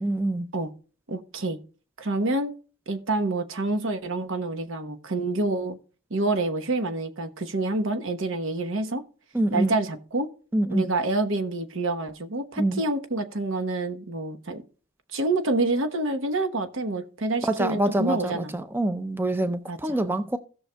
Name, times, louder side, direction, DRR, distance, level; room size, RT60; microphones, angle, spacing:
voice 1, 0.0-0.5 9.3-9.8 10.5-10.9 12.6-12.8 17.4-20.4, right 1 dB, 10° right, 0.4 m, -25 dB
voice 2, 1.1-1.6 2.0-2.5 2.9-5.8 6.1-9.0 9.5-10.3 10.7-14.6 15.1-18.5 19.7-20.0, right 2 dB, 80° right, 1.1 m, -27 dB
16.5 x 6.4 x 2.2 m
head